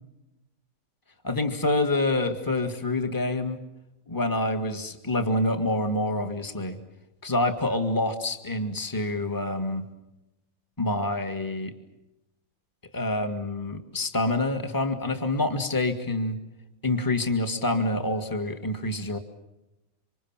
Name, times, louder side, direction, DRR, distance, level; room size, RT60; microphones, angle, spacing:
voice 1, 1.2-3.6 4.1-6.8 7.2-9.9 10.8-11.7 12.9-16.4 16.8-19.2, left 2 dB, 15° left, 7 dB, 1.9 m, -27 dB
27.5 x 25.5 x 7.4 m, 0.92 s
omnidirectional pair, 1.5 m